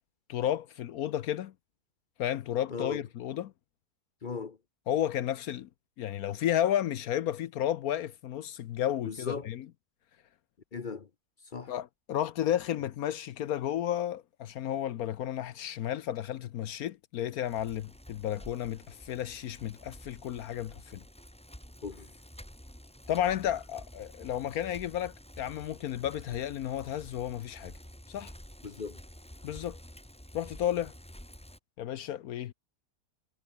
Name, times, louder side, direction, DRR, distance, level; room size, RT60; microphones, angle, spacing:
voice 1, 0.3-1.5 2.2-3.5 4.9-5.7 6.0-9.7 11.7-21.0 23.1-27.7 28.1-28.3 29.4-29.8 30.3-30.9 31.8-32.5, left 11 dB, 70° left, 1.1 m, -32 dB
voice 2, 2.7-3.0 4.2-4.6 9.0-9.5 10.7-11.1 11.5-11.7 21.8-22.1 28.6-29.0, left 5 dB, 40° left, 0.9 m, -37 dB
Bicycle, 17.5-31.6, equal, 5° left, 2.0 m, -50 dB
omnidirectional pair, 1.7 m